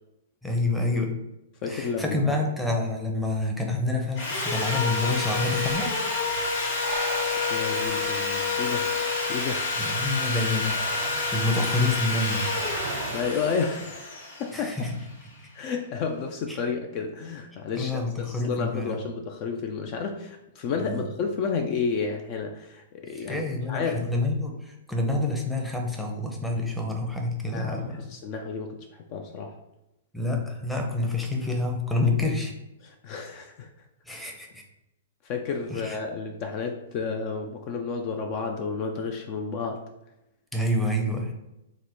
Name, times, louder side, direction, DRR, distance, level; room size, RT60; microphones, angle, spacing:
voice 1, 0.4-1.2 1.6-5.9 9.7-12.5 14.5-14.9 16.5-16.6 17.8-19.0 20.8-21.1 23.0-28.1 30.1-32.5 34.1-34.6 35.7-36.0 40.5-41.3, left 2 dB, 5° left, 1 dB, 0.7 m, -28 dB
voice 2, 1.6-2.4 7.5-8.9 9.3-9.6 13.1-14.9 15.5-24.0 27.5-29.5 32.8-33.7 35.2-39.8, left 5 dB, 40° left, 4 dB, 0.4 m, -31 dB
Sawing, 4.2-15.2, left 3 dB, 60° left, 1.2 m, -28 dB
Breathing, 5.7-13.6, right 5 dB, 60° right, 0.5 m, -40 dB
3.6 x 2.1 x 4.2 m, 0.90 s
hypercardioid pair, 115°, 0 cm